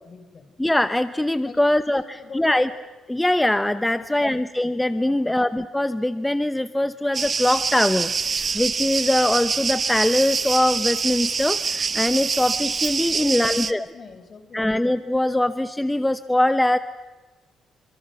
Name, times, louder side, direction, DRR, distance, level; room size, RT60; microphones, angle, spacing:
voice 1, 0.0-0.5 1.4-2.6 3.9-4.5 5.0-5.4 13.1-14.8, left 5 dB, 45° left, 8 dB, 4.2 m, -42 dB
voice 2, 0.6-2.7 3.1-13.9 14.5-16.8, left 1 dB, 10° left, 12 dB, 0.8 m, -22 dB
sound 1, 7.1-13.7, right 5 dB, 40° right, 1.2 m, -25 dB
29.0 x 25.5 x 5.9 m, 1.3 s
cardioid pair, 90°, 0 cm